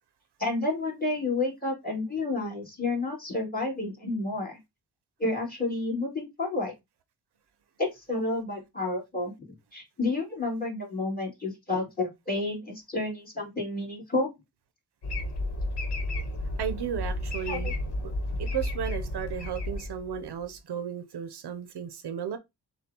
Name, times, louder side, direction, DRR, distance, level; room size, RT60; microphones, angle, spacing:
voice 1, 0.4-4.6 5.2-6.7 7.8-14.3 17.5-17.7, left 2 dB, 20° left, 2.3 m, -30 dB
sound 1, 15.0-20.4, left 1 dB, 85° left, 1.1 m, -32 dB
voice 2, 16.6-17.7 18.0-18.1 18.4-22.4, right 8 dB, 75° right, 0.6 m, -34 dB
6.8 x 2.3 x 2.8 m
cardioid pair, 70°, 40 cm